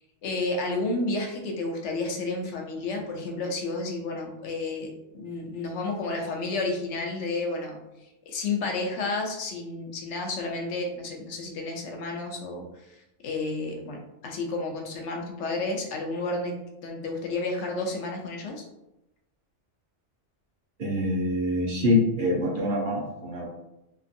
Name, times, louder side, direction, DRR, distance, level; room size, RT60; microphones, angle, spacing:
voice 1, 0.2-7.8 8.3-16.5 16.8-18.6, left 3 dB, 80° left, 2 dB, 0.9 m, -31 dB
voice 2, 20.8-23.5, left 1 dB, 55° right, -2 dB, 0.7 m, -25 dB
2.9 x 2.6 x 2.5 m, 0.91 s
omnidirectional pair, 1.2 m